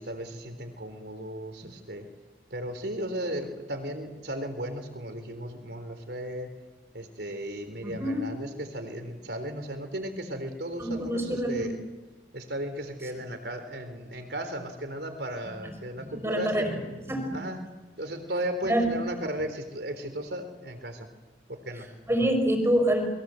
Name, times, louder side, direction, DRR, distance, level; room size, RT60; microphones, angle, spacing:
voice 1, 0.0-2.1 2.5-6.5 6.9-11.8 12.3-16.8 17.3-17.7 18.0-21.1 21.5-21.9, right 1 dB, 65° right, 8 dB, 3.8 m, -35 dB
voice 2, 7.8-8.3 10.8-11.7 13.0-13.1 15.6-17.5 18.6-19.0 21.7-23.1, right 1 dB, 15° right, 5 dB, 5.1 m, -27 dB
29.5 x 22.5 x 7.8 m, 1.2 s
head